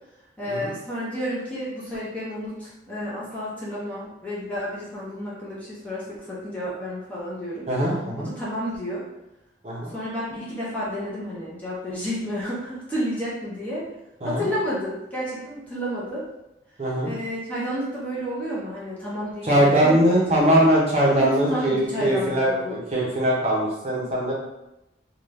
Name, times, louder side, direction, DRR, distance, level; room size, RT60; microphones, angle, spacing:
voice 1, 0.4-7.7 8.2-9.0 9.9-13.9 14.2-16.2 17.0-20.2 20.6-20.7 21.2-22.8, equal, 10° left, -8 dB, 0.7 m, -31 dB
voice 2, 7.7-8.3 9.6-9.9 14.2-14.5 16.8-17.1 19.4-24.3, right 1 dB, 35° right, -5 dB, 0.8 m, -21 dB
2.7 x 2.3 x 3.3 m, 0.92 s
head